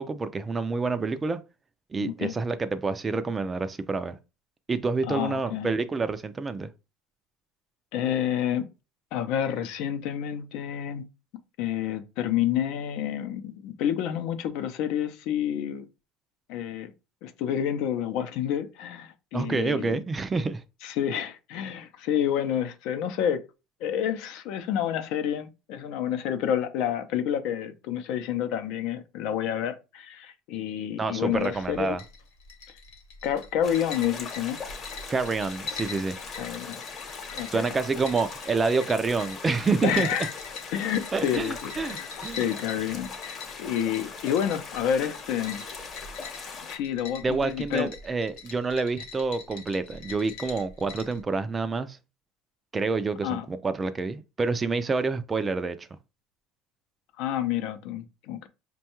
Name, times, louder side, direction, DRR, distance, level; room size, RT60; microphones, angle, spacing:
voice 1, 0.0-1.4 1.9-4.2 4.7-6.7 19.3-20.6 31.0-32.0 35.1-36.2 37.5-40.1 41.1-42.4 47.2-52.0 52.7-55.9, right 4 dB, 20° right, 0.3 m, -28 dB
voice 2, 2.0-2.3 5.0-5.7 7.9-8.7 9.1-11.0 11.6-15.9 16.5-16.9 17.2-20.0 20.8-23.4 23.8-32.0 33.2-34.6 36.4-36.8 37.3-37.7 39.8-40.3 40.7-42.1 42.4-45.6 46.6-47.9 53.2-53.4 57.2-58.5, left 9 dB, 70° left, 0.5 m, -29 dB
sound 1, 31.3-51.2, left 5 dB, 90° left, 1.0 m, -43 dB
sound 2, 33.6-46.8, left 5 dB, 35° left, 0.9 m, -40 dB
5.3 x 2.2 x 2.9 m
cardioid pair, 130°, 0 cm